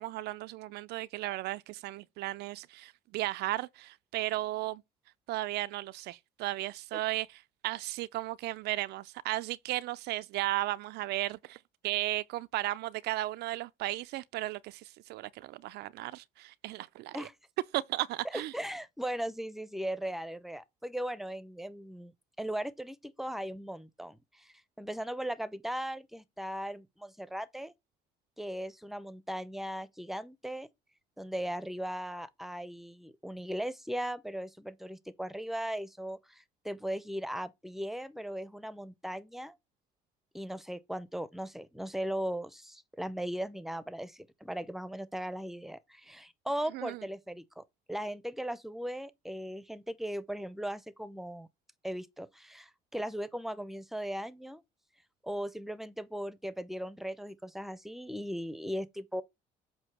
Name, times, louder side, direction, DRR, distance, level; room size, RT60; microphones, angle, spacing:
voice 1, 0.0-4.8 5.3-11.6 11.8-17.3 17.7-18.5 46.7-47.0, right 17 dB, 75° right, 0.4 m, -35 dB
voice 2, 18.2-22.1 22.4-27.7 28.4-30.7 31.2-39.6 40.3-47.6 47.9-51.5 51.8-54.6 55.2-59.2, equal, ahead, 0.7 m, -38 dB
7.9 x 2.8 x 5.9 m
cardioid pair, 110°, 17 cm